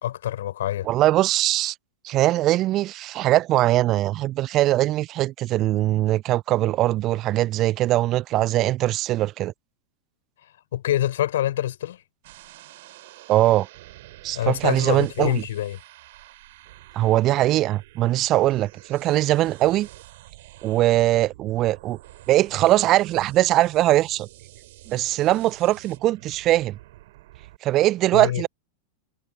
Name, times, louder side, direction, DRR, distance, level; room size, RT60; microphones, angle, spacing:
voice 1, 0.0-0.9 10.7-12.0 14.3-15.8 28.1-28.4, left 12 dB, 60° left, 3.9 m, -25 dB
voice 2, 0.9-1.7 2.0-9.5 13.3-13.7 14.2-15.4 16.9-19.9 20.6-22.0 22.3-24.3 24.9-26.7 27.6-28.5, right 15 dB, 35° right, 0.3 m, -21 dB
sound 1, 12.2-27.6, right 17 dB, 55° right, 5.6 m, -48 dB
figure-of-eight pair, 90°, 0 cm